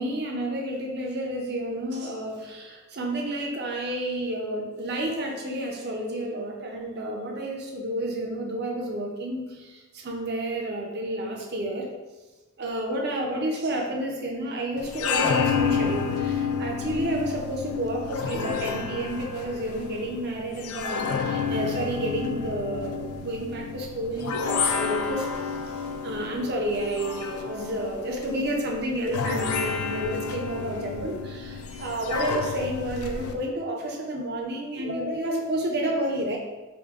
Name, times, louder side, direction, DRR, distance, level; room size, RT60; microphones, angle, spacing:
voice 1, 0.0-11.9 12.6-25.5 26.0-36.4, right 1 dB, 50° right, 1 dB, 0.6 m, -30 dB
sound 1, 14.8-33.3, left 6 dB, 85° left, 0.4 m, -30 dB
3.6 x 2.1 x 3.5 m, 1.2 s
head